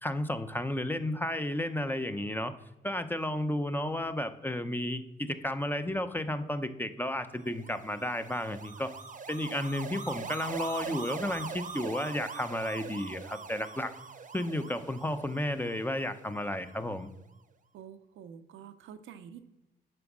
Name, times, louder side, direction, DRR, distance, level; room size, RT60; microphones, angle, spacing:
voice 1, 0.0-2.5 2.8-8.9 9.3-13.9 14.3-17.1, left 1 dB, 10° left, 9 dB, 0.7 m, -33 dB
sound 1, 7.5-16.8, right 5 dB, 40° right, 0.8 m, -42 dB
voice 2, 17.7-19.4, right 8 dB, 85° right, 10 dB, 0.6 m, -48 dB
7.6 x 5.2 x 6.1 m, 1.0 s
cardioid pair, 60°, 20 cm